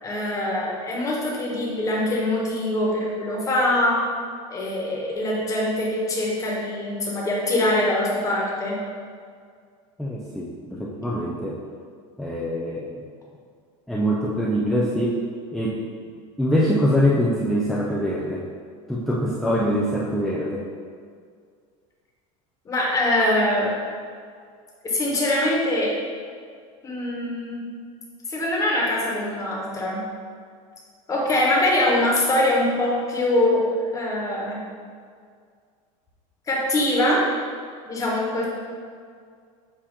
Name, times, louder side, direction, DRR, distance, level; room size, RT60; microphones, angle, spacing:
voice 1, 0.0-4.0 4.5-8.8 10.7-10.8 22.6-23.7 24.8-26.0 26.8-27.6 28.3-30.0 31.1-34.6 36.5-37.2 37.9-38.4, left 1 dB, 20° left, -4 dB, 1.3 m, -23 dB
voice 2, 10.0-10.5 10.8-11.6 12.2-13.0 13.9-15.2 15.5-15.8 16.4-18.5 18.9-20.7, equal, ahead, -4 dB, 0.4 m, -23 dB
7.5 x 2.8 x 5.0 m, 2.1 s
supercardioid pair, 155°, 18 cm